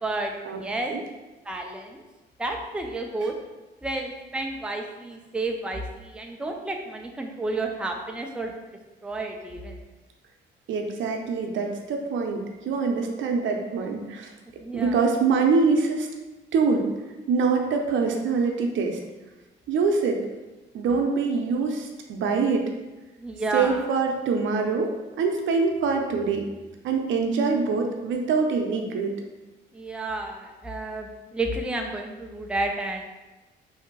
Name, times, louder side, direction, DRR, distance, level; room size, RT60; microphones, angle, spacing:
voice 1, 0.0-0.3 0.6-0.9 1.5-2.0 2.4-3.3 3.8-8.5 9.0-9.8 14.6-14.9 23.2-23.8 29.7-33.0, right 2 dB, 5° right, 2 dB, 0.5 m, -31 dB
voice 2, 10.7-14.3 14.7-16.1 16.5-16.9 17.3-19.0 19.7-20.2 20.7-22.6 23.5-26.5 26.8-29.1, right 4 dB, 75° right, 3 dB, 0.6 m, -24 dB
3.3 x 2.8 x 4.6 m, 1.1 s
cardioid pair, 90°, 20 cm